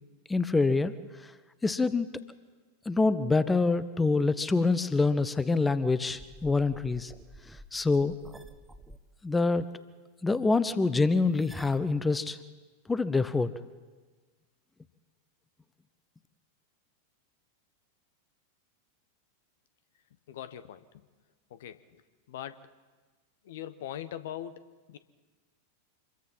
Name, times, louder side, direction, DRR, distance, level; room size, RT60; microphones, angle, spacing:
voice 1, 0.3-0.9 1.2-1.3 1.6-2.1 2.8-7.1 7.5-8.2 9.2-9.7 10.2-12.4 12.9-13.5, left 3 dB, 10° left, 15 dB, 0.9 m, -26 dB
sound 1, 6.2-9.0 11.4-11.9, right 1 dB, 10° right, 1.2 m, -49 dB
voice 2, 20.3-21.1 21.5-22.0 22.3-22.7 23.4-25.0, left 11 dB, 55° left, 13 dB, 1.1 m, -41 dB
26.5 x 22.0 x 5.6 m, 1.4 s
figure-of-eight pair, 90°, 0 cm